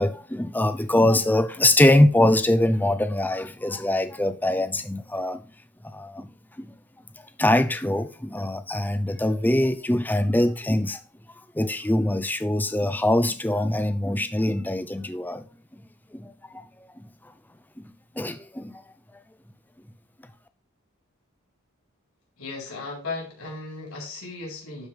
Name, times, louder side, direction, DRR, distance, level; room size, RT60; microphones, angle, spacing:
voice 1, 0.0-5.4 5.9-6.3 6.6-6.7 7.4-11.0 11.6-15.4 16.1-16.7 17.8-18.7, left 1 dB, 10° left, 0.6 m, -23 dB
voice 2, 22.4-24.9, left 3 dB, 75° left, 4.5 m, -36 dB
12.0 x 5.0 x 3.5 m
head